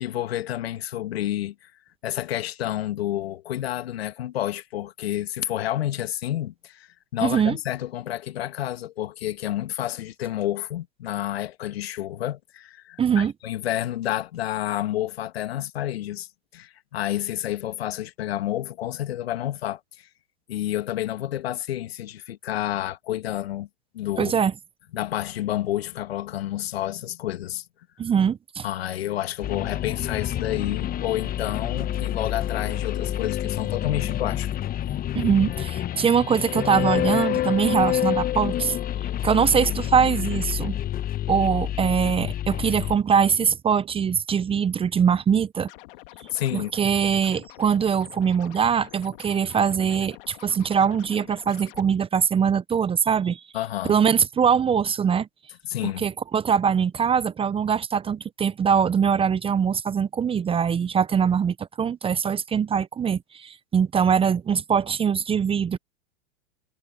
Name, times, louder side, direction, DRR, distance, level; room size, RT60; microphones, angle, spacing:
voice 1, 0.0-1.7 2.0-16.3 16.5-20.1 20.5-23.7 23.9-24.3 24.9-27.6 28.6-34.5 35.0-35.2 46.3-46.7 53.5-54.0 55.7-56.1, left 13 dB, 75° left, 2.1 m, -29 dB
voice 2, 7.2-7.6 13.0-13.3 24.2-24.5 28.0-28.6 35.1-38.8 39.2-40.8 41.3-45.7 46.5-53.4 53.8-55.3 56.0-65.8, right 7 dB, 20° right, 0.8 m, -22 dB
sound 1, 29.4-43.0, left 12 dB, 30° left, 1.4 m, -28 dB
Scratching (performance technique), 45.6-51.8, left 21 dB, 60° left, 2.1 m, -47 dB
hypercardioid pair, 105°, 31 cm